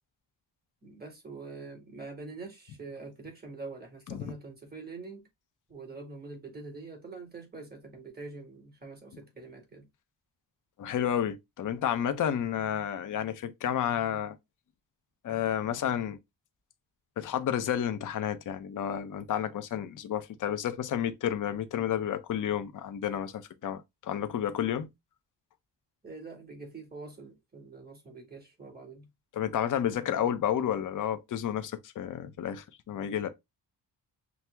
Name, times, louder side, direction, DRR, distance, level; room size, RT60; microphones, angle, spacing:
voice 1, 0.8-5.2 5.7-9.9 26.0-29.1, right 3 dB, 20° right, 1.8 m, -45 dB
voice 2, 10.8-14.4 15.2-16.2 17.2-24.9 29.3-33.3, left 9 dB, 45° left, 0.5 m, -31 dB
5.9 x 2.0 x 3.3 m
wide cardioid pair, 125°, 43 cm